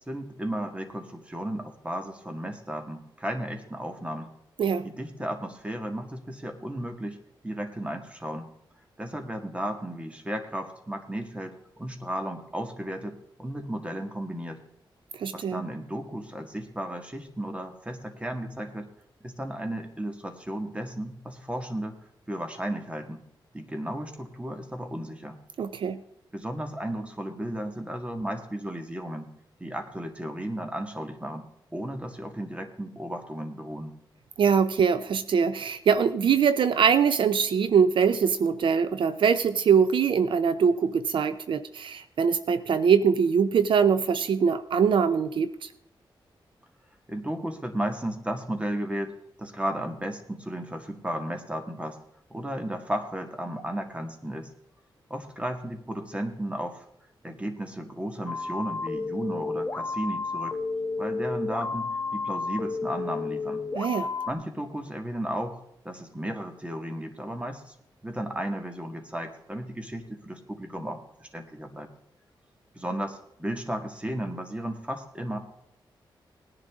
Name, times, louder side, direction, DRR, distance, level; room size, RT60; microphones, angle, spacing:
voice 1, 0.0-4.3 4.8-7.2 7.4-8.5 9.0-14.6 15.3-18.9 19.2-22.0 22.3-23.2 23.5-25.4 26.3-29.3 29.6-33.9 47.1-49.1 49.4-52.0 52.3-54.5 55.1-56.9 57.2-60.6 61.0-63.6 64.3-67.7 68.0-71.9 72.7-75.4, right 1 dB, 15° right, 5 dB, 1.9 m, -34 dB
voice 2, 15.2-15.6 25.6-26.0 34.4-45.7 63.7-64.1, right 6 dB, 75° right, 12 dB, 0.6 m, -23 dB
sound 1, 58.3-64.3, left 4 dB, 25° left, 1.3 m, -31 dB
19.0 x 10.5 x 3.7 m, 0.76 s
wide cardioid pair, 105°, 9 cm